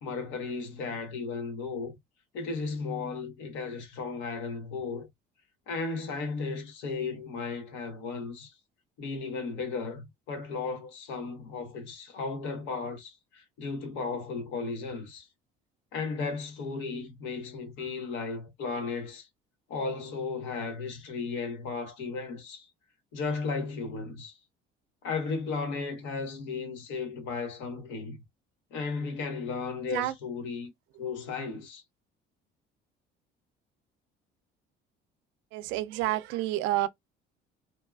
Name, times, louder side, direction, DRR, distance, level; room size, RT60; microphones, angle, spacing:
voice 1, 0.0-1.9 2.3-5.1 5.7-8.6 9.0-15.3 15.9-19.3 19.7-22.7 23.1-24.4 25.0-28.2 28.7-30.7 31.0-31.8, left 4 dB, 80° left, 0.9 m, -35 dB
voice 2, 35.5-36.9, right 15 dB, 85° right, 0.4 m, -29 dB
2.7 x 2.3 x 2.2 m
cardioid pair, 135°, 19 cm